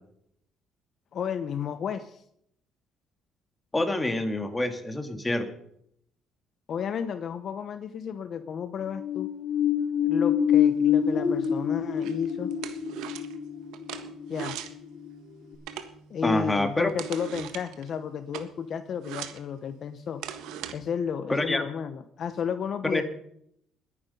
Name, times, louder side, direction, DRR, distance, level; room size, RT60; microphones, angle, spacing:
voice 1, 1.1-2.2 6.7-9.3 10.0-12.5 14.3-14.6 16.1-20.2 20.7-23.0, left 7 dB, 45° left, 10 dB, 0.9 m, -32 dB
voice 2, 3.7-5.5 16.2-16.9 21.3-21.6 22.9-23.0, left 1 dB, 10° left, 6 dB, 1.9 m, -26 dB
sound 1, 8.8-15.2 15.5-15.6, left 8 dB, 65° left, 3.0 m, -26 dB
sound 2, 10.6-20.7, right 9 dB, 85° right, 1.4 m, -42 dB
20.5 x 9.7 x 5.4 m, 0.72 s
cardioid pair, 135°, 0 cm